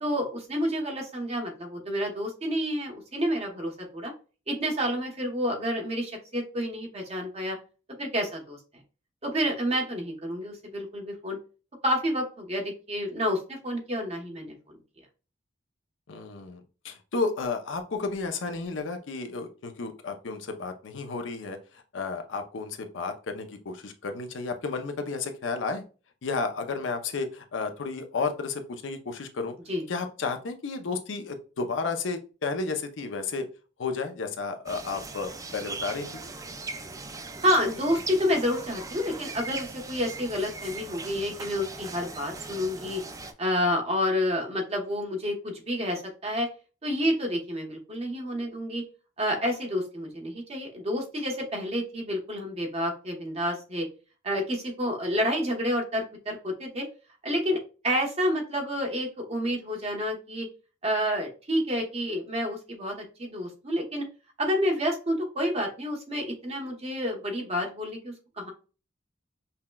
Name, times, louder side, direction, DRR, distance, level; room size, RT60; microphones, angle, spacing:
voice 1, 0.0-4.1 4.5-7.6 8.0-8.6 9.2-11.4 11.8-14.8 29.7-29.8 37.4-43.0 43.4-46.5 46.8-48.8 49.2-53.9 54.2-56.8 57.2-57.6 57.8-60.5 60.8-62.9 63.2-64.1 64.4-68.5, equal, 35° right, 1 dB, 1.0 m, -29 dB
voice 2, 16.1-25.8 26.2-29.5 29.9-33.5 33.8-36.1, left 4 dB, 80° left, 7 dB, 0.6 m, -32 dB
sound 1, 34.7-43.3, right 3 dB, 20° right, 0.3 m, -39 dB
5.6 x 2.2 x 2.3 m, 0.35 s
head